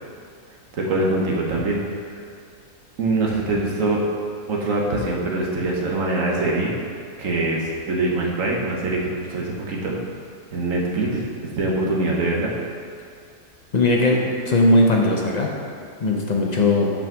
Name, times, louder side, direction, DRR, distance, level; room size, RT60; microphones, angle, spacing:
voice 1, 0.7-1.8 3.0-4.0 4.5-6.7 7.2-10.0 10.5-11.2 11.5-12.5, right 2 dB, 60° right, -2 dB, 1.3 m, -23 dB
voice 2, 13.7-15.5 16.0-16.9, left 2 dB, 50° left, -1 dB, 0.5 m, -18 dB
6.2 x 4.8 x 6.0 m, 2.4 s
omnidirectional pair, 1.7 m